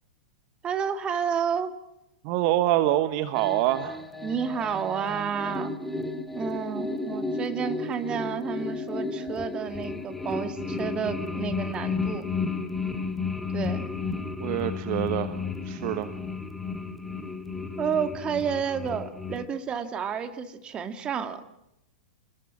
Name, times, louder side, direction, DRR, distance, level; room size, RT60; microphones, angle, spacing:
voice 1, 0.6-1.8 4.2-5.7 6.3-12.2 13.5-13.9 17.8-21.4, right 7 dB, 20° right, 8 dB, 2.2 m, -30 dB
voice 2, 2.2-4.0 14.4-15.4 15.6-16.1, right 14 dB, 40° right, 11 dB, 1.3 m, -25 dB
sound 1, 3.3-19.4, left 4 dB, 5° left, 2.1 m, -33 dB
28.5 x 21.0 x 7.5 m, 0.85 s
figure-of-eight pair, 100°, 4 cm